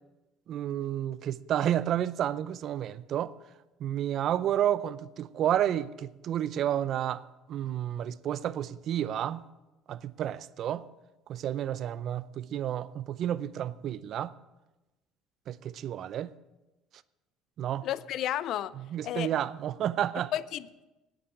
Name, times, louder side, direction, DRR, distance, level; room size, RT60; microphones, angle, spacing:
voice 1, 0.5-3.3 3.8-7.2 7.5-9.4 9.9-10.9 11.3-14.3 15.5-16.3 17.6-17.9 18.9-20.3, right 11 dB, 55° right, 0.5 m, -31 dB
voice 2, 17.8-18.7 19.0-19.3 20.3-20.8, left 12 dB, 60° left, 0.5 m, -32 dB
9.9 x 8.7 x 7.7 m
cardioid pair, 110°, 0 cm